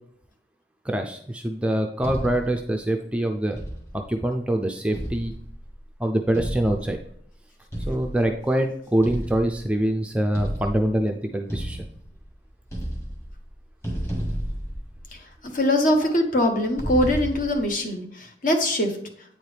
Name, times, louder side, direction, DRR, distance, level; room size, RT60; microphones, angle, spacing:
voice 1, 0.8-3.6 3.9-5.3 6.0-7.0 7.9-11.9, right 1 dB, 5° right, 4 dB, 0.4 m, -24 dB
sound 1, 2.0-2.6 3.6-4.1 4.9-5.7 6.3-7.1 7.7-8.3 9.0-9.8 10.3-11.0 11.5-12.3 12.6-13.5 13.8-15.3 16.8-17.7, equal, 15° left, 1.7 m, -32 dB
voice 2, 15.5-18.9, left 1 dB, 45° left, 4 dB, 1.1 m, -22 dB
8.8 x 4.5 x 3.3 m, 0.65 s
head